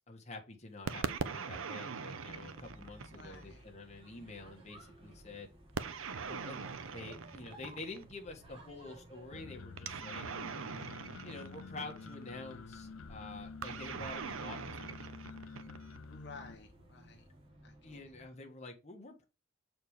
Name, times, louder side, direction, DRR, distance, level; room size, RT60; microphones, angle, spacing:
voice 1, 0.1-5.5 6.3-6.6 6.9-10.3 11.2-15.0 17.8-19.2, left 2 dB, 35° left, 1 dB, 1.5 m, -48 dB
sound 1, 0.9-3.5 5.7-8.1 9.8-12.2 13.6-16.0, right 5 dB, 85° right, 0.7 m, -41 dB
City hum with ambulance and kids, 2.2-18.2, right 1 dB, 30° right, 3.4 m, -57 dB
voice 2, 3.1-3.6 16.1-17.3 17.6-18.0, left 4 dB, 60° left, 3 dB, 1.1 m, -53 dB
sound 2, 9.3-16.5, left 4 dB, 85° left, 0.5 m, -49 dB
7.0 x 4.4 x 4.8 m, 0.29 s
head